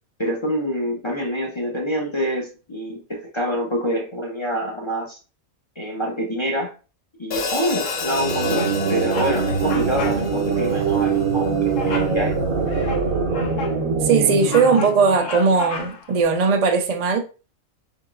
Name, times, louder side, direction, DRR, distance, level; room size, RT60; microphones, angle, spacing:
voice 1, 0.2-5.2 5.8-6.7 7.2-12.4, equal, 35° left, 0.4 m, -26 dB
Hi-hat, 7.3-11.6, left 4 dB, 85° left, 1.3 m, -31 dB
Bird vocalization bird call bird song, 7.8-8.2 8.6-8.8 9.1-9.4 9.6-10.2 10.5-10.7 11.8-12.2 12.7-13.8 14.2-16.1, left 5 dB, 70° left, 0.9 m, -33 dB
sound 1, 8.0-15.6, right 5 dB, 80° right, 1.2 m, -23 dB
voice 2, 14.0-17.2, right 5 dB, 60° right, 0.4 m, -18 dB
3.7 x 3.6 x 2.4 m
omnidirectional pair, 1.4 m